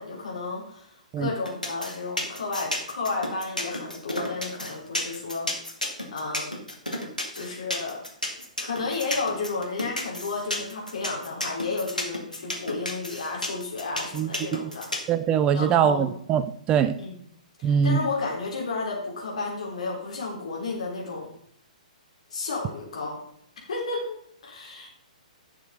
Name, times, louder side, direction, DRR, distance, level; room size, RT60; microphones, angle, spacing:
voice 1, 0.0-6.6 7.3-8.0 8.6-14.9 15.5-16.1 17.0-17.2 17.6-21.3 22.3-23.2 23.6-24.1 24.4-24.9, left 3 dB, 55° left, -2 dB, 3.7 m, -32 dB
sound 1, 1.5-15.1, left 1 dB, 90° left, 2.1 m, -31 dB
voice 2, 14.1-14.7 15.1-16.9 17.6-18.0, right 8 dB, 20° right, 12 dB, 0.4 m, -23 dB
11.0 x 6.7 x 3.8 m, 0.68 s
figure-of-eight pair, 120°, 4 cm